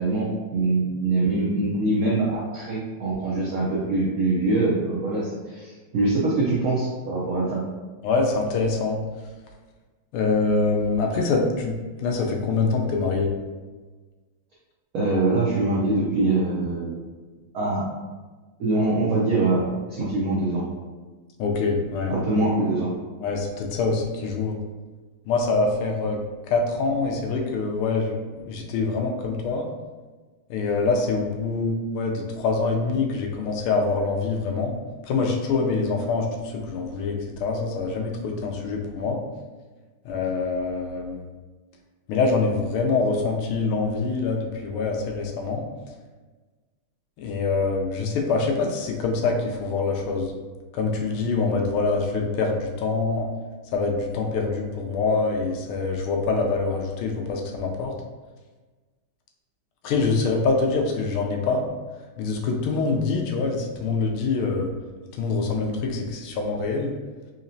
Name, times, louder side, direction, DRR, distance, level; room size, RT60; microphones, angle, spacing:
voice 1, 0.0-7.6 14.9-17.0 17.5-17.8 18.6-20.7 22.1-22.9, right 2 dB, 75° right, -6 dB, 0.8 m, -23 dB
voice 2, 8.0-9.0 10.1-11.7 12.0-13.3 21.4-22.1 23.2-24.6 25.3-26.2 26.5-29.7 30.5-34.7 35.1-39.2 40.0-41.2 42.1-45.6 47.2-50.3 50.7-53.3 53.7-57.9 59.8-61.6 62.2-64.7 65.2-66.9, left 4 dB, 80° left, 1 dB, 1.5 m, -25 dB
4.1 x 2.8 x 2.6 m, 1.3 s
omnidirectional pair, 2.3 m